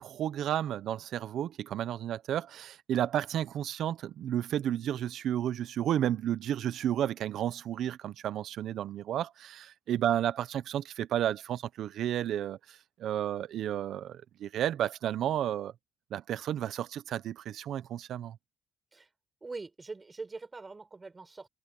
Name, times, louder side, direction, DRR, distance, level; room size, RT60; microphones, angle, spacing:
voice 1, 0.0-15.7 16.1-18.4, right 11 dB, 75° right, 0.9 m, -32 dB
voice 2, 19.4-21.5, right 3 dB, 25° right, 4.8 m, -43 dB
cardioid pair, 90°, 0 cm